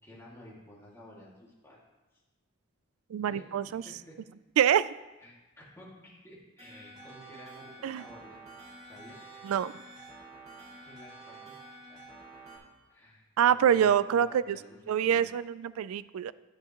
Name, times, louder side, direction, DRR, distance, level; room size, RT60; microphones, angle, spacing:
voice 1, 0.0-1.8 2.1-2.2 3.2-4.2 5.2-8.4 8.8-9.2 10.5-11.4 11.9-12.0 12.9-15.3, left 1 dB, 10° left, -6 dB, 2.1 m, -52 dB
voice 2, 3.1-3.8 4.6-4.9 7.8-8.0 9.4-9.7 13.4-14.6 14.9-16.3, right 9 dB, 85° right, 18 dB, 0.3 m, -25 dB
sound 1, 6.6-12.6, right 2 dB, 30° right, 1.9 m, -49 dB
10.5 x 9.6 x 3.0 m, 1.1 s
head